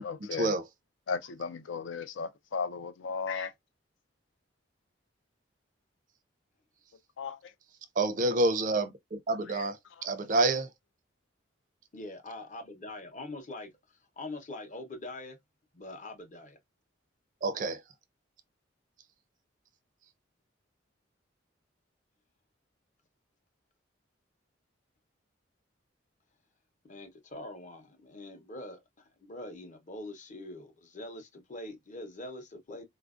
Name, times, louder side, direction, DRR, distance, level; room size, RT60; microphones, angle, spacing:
voice 1, 0.0-0.6 1.1-3.5 7.2-7.5 9.4-9.7 10.0-10.1, left 5 dB, 80° left, 0.4 m, -36 dB
voice 2, 8.0-10.7 17.4-17.8, right 2 dB, 40° right, 0.4 m, -28 dB
voice 3, 11.9-13.7 14.2-15.4 15.7-16.6 26.8-32.8, left 2 dB, 40° left, 0.8 m, -43 dB
4.1 x 2.5 x 2.4 m
head